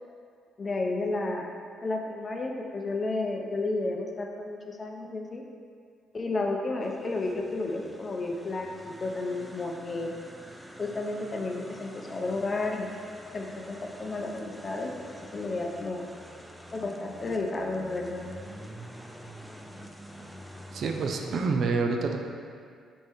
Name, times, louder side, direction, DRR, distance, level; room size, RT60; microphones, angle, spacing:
voice 1, 0.6-1.5 1.8-5.4 6.1-10.1 10.8-12.9 13.3-14.9 15.3-16.1 16.7-18.3, left 2 dB, 35° left, 2 dB, 0.7 m, -32 dB
sound 1, 6.8-21.5, equal, ahead, 0.5 m, -47 dB
voice 2, 20.7-22.2, right 4 dB, 60° right, 4 dB, 0.5 m, -27 dB
6.7 x 4.3 x 3.5 m, 2.2 s
cardioid pair, 90°, 0 cm